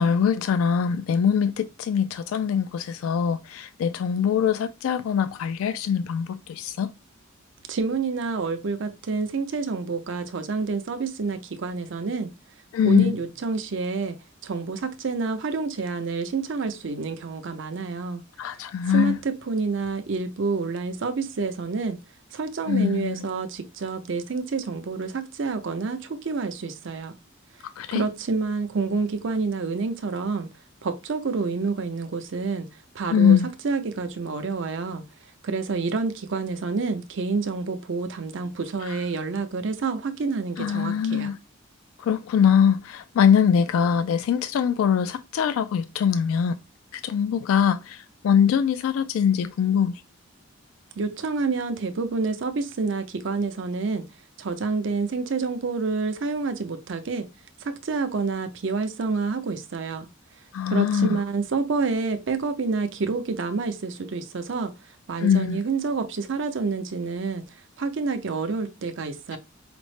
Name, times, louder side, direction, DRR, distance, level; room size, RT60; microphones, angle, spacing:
voice 1, 0.0-6.9 12.7-13.1 18.4-19.2 22.7-23.3 27.8-28.0 33.1-33.5 38.8-39.0 40.6-41.4 42.0-46.6 46.9-50.0 60.5-61.2 65.2-65.6 69.3-69.4, left 7 dB, 90° left, 0.3 m, -22 dB
voice 2, 7.7-12.3 12.8-14.2 14.4-18.2 18.9-22.0 22.3-27.1 27.9-30.5 30.8-32.7 32.9-33.4 33.6-35.0 35.4-41.3 51.0-54.0 54.4-57.3 57.6-60.1 60.7-64.7 65.1-67.4 67.8-69.4, right 4 dB, 65° right, 0.6 m, -28 dB
5.0 x 2.0 x 3.1 m
head